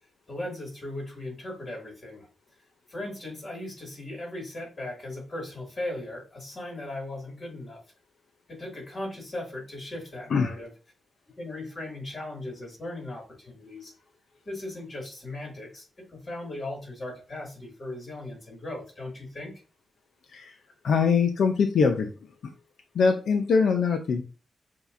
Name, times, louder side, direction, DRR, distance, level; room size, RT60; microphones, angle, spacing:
voice 1, 0.3-2.3 2.9-7.8 8.5-10.7 11.4-13.9 14.5-15.9 16.1-19.5, left 1 dB, 30° left, -1 dB, 2.4 m, -38 dB
voice 2, 20.8-22.1 22.9-24.2, left 5 dB, 75° left, 4 dB, 0.6 m, -23 dB
7.0 x 2.9 x 2.6 m, 0.35 s
wide cardioid pair, 145°, 0 cm